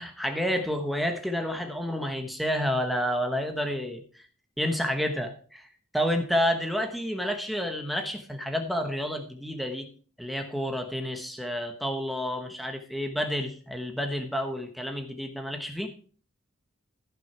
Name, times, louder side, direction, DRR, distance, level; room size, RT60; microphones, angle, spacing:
voice 1, 0.0-4.0 4.6-5.7 5.9-9.9 10.2-15.9, equal, ahead, 4 dB, 1.1 m, -29 dB
14.5 x 6.3 x 4.5 m, 0.41 s
head